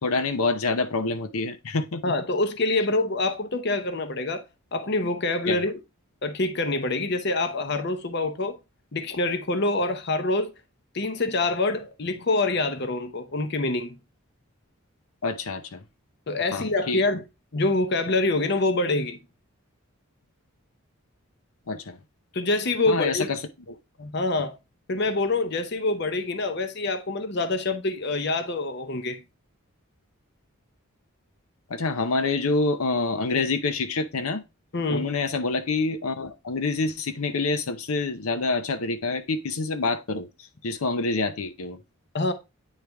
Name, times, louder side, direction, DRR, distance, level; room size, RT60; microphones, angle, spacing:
voice 1, 0.0-2.1 5.5-5.6 15.2-15.8 16.5-17.0 21.7-22.0 22.9-23.4 23.7-23.8 31.7-34.4 34.9-40.3 40.6-41.8, left 3 dB, 85° left, 0.7 m, -27 dB
voice 2, 2.0-4.4 4.7-5.7 6.2-8.6 8.9-10.5 10.9-14.0 16.3-17.2 17.5-19.2 22.3-23.3 24.0-24.6 24.9-29.2 34.7-35.1 42.1-42.3, left 2 dB, 50° left, 0.7 m, -26 dB
9.2 x 3.3 x 3.4 m
head